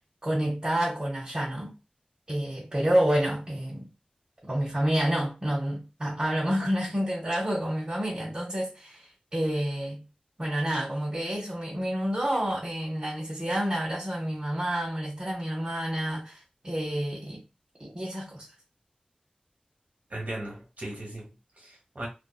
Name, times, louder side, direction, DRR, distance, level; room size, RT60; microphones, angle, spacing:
voice 1, 0.2-1.7 2.3-3.9 4.4-10.0 10.4-17.4 17.8-18.5, right 1 dB, 35° right, 1.0 m, -29 dB
voice 2, 20.1-22.1, right 1 dB, 75° right, 1.3 m, -38 dB
2.6 x 2.4 x 2.3 m
wide cardioid pair, 50°, 3 cm